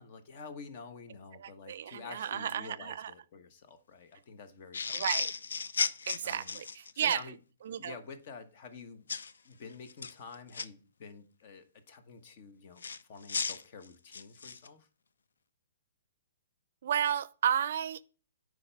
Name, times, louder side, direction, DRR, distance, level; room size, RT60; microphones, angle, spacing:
voice 1, 0.0-5.0 6.2-6.6 6.9-7.4 7.7-9.1 9.4-12.8 13.1-14.9, left 5 dB, 50° left, 1.1 m, -49 dB
voice 2, 1.4-3.1 4.9-5.3 6.1-6.6 7.0-7.2 7.6-8.0 16.8-18.0, right 9 dB, 60° right, 0.4 m, -32 dB
sound 1, 4.7-7.2 9.1-9.3 9.9-10.7 12.8-14.7, left 5 dB, 80° left, 0.5 m, -35 dB
8.2 x 5.0 x 3.4 m
hypercardioid pair, 135°, 0 cm